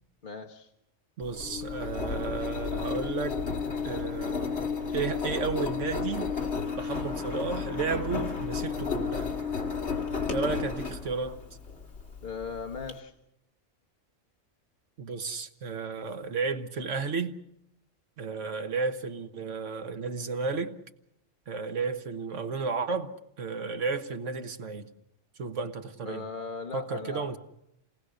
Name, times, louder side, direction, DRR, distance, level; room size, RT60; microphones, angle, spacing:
voice 1, 0.2-0.7 12.2-13.1 26.0-27.3, left 5 dB, 40° left, 1.3 m, -38 dB
Engine, 1.2-12.9, left 5 dB, 60° left, 2.3 m, -33 dB
voice 2, 1.2-3.4 3.8-4.6 4.9-6.3 6.8-9.3 10.3-11.4 15.0-17.4 18.2-20.8 21.5-24.8 25.4-26.3 26.7-27.4, right 4 dB, 75° right, 1.6 m, -33 dB
28.5 x 19.0 x 6.4 m
omnidirectional pair, 1.3 m